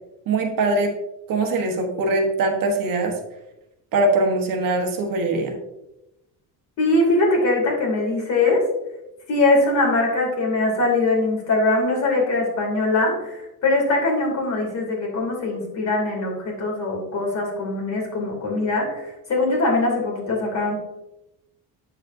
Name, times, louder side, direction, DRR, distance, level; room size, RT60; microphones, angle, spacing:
voice 1, 0.3-0.9 1.3-3.2 3.9-5.6, right 2 dB, 60° right, 3 dB, 1.3 m, -22 dB
voice 2, 6.8-8.6 9.3-20.8, left 2 dB, 45° left, -1 dB, 2.7 m, -22 dB
7.9 x 7.3 x 2.6 m, 0.92 s
cardioid pair, 175°, 37 cm